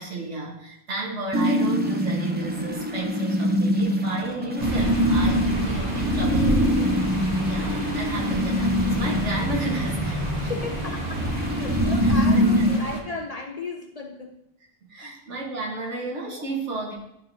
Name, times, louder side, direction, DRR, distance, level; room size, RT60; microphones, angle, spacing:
voice 1, 0.0-10.7 12.0-12.8 14.9-16.9, right 2 dB, 80° right, -2 dB, 1.8 m, -33 dB
sound 1, 1.3-12.8, equal, 15° right, 0.4 m, -24 dB
sound 2, 4.6-13.0, equal, 35° right, 1.3 m, -29 dB
voice 2, 10.5-11.3 11.5-14.4 15.0-15.2 16.3-16.4, left 3 dB, 40° left, 2 dB, 0.6 m, -35 dB
11.0 x 5.1 x 2.8 m, 0.81 s
omnidirectional pair, 1.2 m